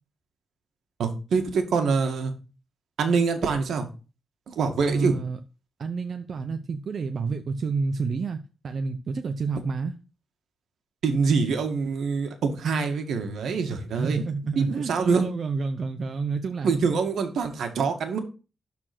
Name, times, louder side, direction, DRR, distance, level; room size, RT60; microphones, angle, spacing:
voice 1, 1.0-2.3 3.0-3.9 4.5-5.1 11.0-14.3 14.6-15.2 16.6-18.2, right 5 dB, 75° right, 2.0 m, -25 dB
voice 2, 4.9-5.4 5.8-9.9 14.0-16.7, right 4 dB, 50° right, 0.7 m, -29 dB
12.5 x 4.4 x 6.1 m
wide cardioid pair, 145°, 0 cm